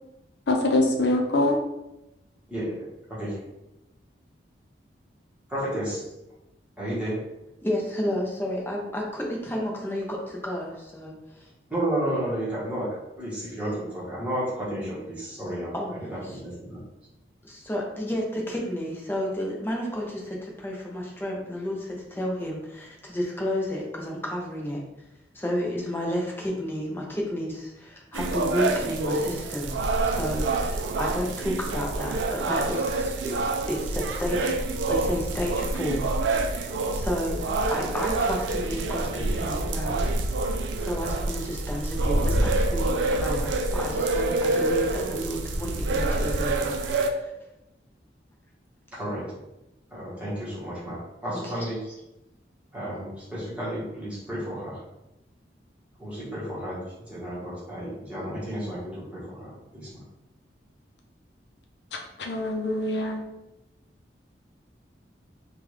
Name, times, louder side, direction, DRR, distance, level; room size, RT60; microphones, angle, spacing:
voice 1, 0.5-1.6 62.2-63.2, left 2 dB, 75° left, 1 dB, 0.6 m, -24 dB
voice 2, 2.5-3.4 5.5-6.1 6.8-7.3 11.7-16.8 48.9-49.3 49.9-51.8 52.7-54.8 56.0-60.0, right 1 dB, 5° right, -9 dB, 1.2 m, -32 dB
voice 3, 7.6-11.5 15.7-16.0 17.4-24.8 25.3-29.8 30.0-33.3 33.7-34.6 34.9-36.1 36.3-36.7 36.9-37.4 37.7-40.0 40.8-46.7 47.0-47.3 51.4-51.7, equal, 10° left, -2 dB, 0.6 m, -31 dB
sound 1, 28.1-47.1, right 2 dB, 85° right, 0.4 m, -27 dB
3.5 x 2.3 x 3.1 m, 0.91 s
head